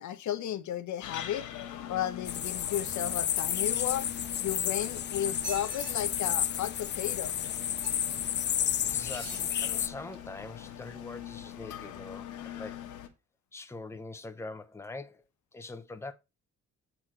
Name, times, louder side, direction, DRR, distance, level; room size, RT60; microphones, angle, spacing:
voice 1, 0.0-1.5 1.9-4.1 4.4-7.3, left 11 dB, 70° left, 1.1 m, -34 dB
sound 1, 1.0-13.1, left 11 dB, 85° left, 1.3 m, -43 dB
sound 2, 2.2-9.9, left 10 dB, 35° left, 0.4 m, -31 dB
sound 3, 4.2-4.9 5.3-5.9 7.8-8.2 9.0-9.5 10.1-10.2, right 2 dB, 55° right, 3.0 m, -44 dB
voice 2, 8.6-12.8 13.5-15.2 15.5-16.1, left 3 dB, 10° left, 0.8 m, -43 dB
7.9 x 4.5 x 4.3 m
cardioid pair, 90°, 30 cm